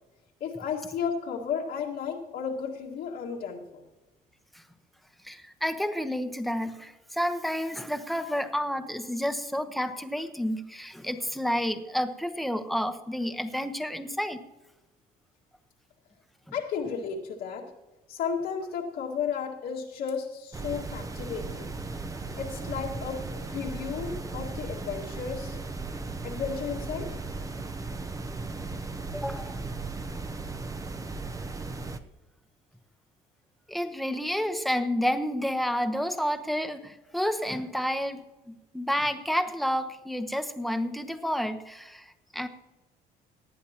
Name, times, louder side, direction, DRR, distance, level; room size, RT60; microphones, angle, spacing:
voice 1, 0.4-3.8 16.5-17.7 18.1-21.7 22.4-25.6 26.2-27.2, left 6 dB, 80° left, -3 dB, 1.9 m, -33 dB
voice 2, 5.2-14.4 29.1-29.5 33.7-42.1 42.3-42.5, equal, ahead, 8 dB, 1.0 m, -30 dB
sound 1, 20.5-32.0, right 3 dB, 20° right, 0.8 m, -36 dB
18.5 x 11.0 x 2.9 m, 1.1 s
cardioid pair, 110°, 17 cm